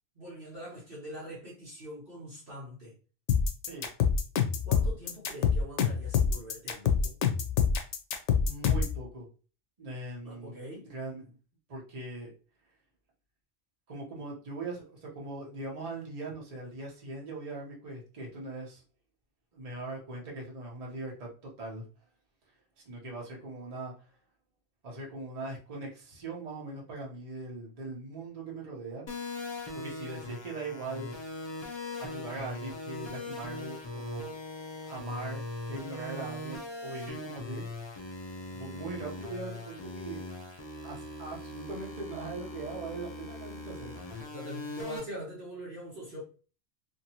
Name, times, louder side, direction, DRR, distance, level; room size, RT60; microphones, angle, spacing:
voice 1, 0.2-2.9 4.6-7.2 10.2-10.9 44.3-46.2, equal, 55° right, 1.1 m, -43 dB
sound 1, 3.3-9.0, left 7 dB, 80° left, 0.9 m, -26 dB
voice 2, 8.4-9.3 9.8-11.4 11.7-12.3 13.9-18.8 19.5-21.8 22.9-23.9 24.8-29.0 29.7-31.1 32.0-34.3 34.8-35.4 35.7-37.6 38.5-40.2 40.8-43.9, right 2 dB, 35° right, 0.9 m, -40 dB
sound 2, 29.1-45.0, left 2 dB, 30° left, 0.5 m, -40 dB
2.8 x 2.7 x 2.7 m
omnidirectional pair, 1.2 m